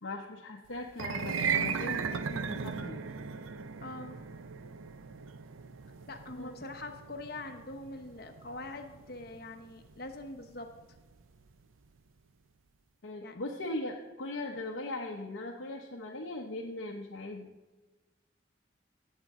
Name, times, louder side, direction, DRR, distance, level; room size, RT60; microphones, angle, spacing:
voice 1, 0.0-3.2 6.3-6.5 13.0-17.5, left 2 dB, 75° left, 0 dB, 0.9 m, -39 dB
Horror piano strings glissando down high strings, 0.9-11.2, right 6 dB, 90° right, 0.6 m, -37 dB
voice 2, 3.8-4.2 6.1-10.7 13.2-13.4, left 2 dB, 50° left, 5 dB, 1.1 m, -43 dB
16.5 x 7.5 x 3.7 m, 1.2 s
head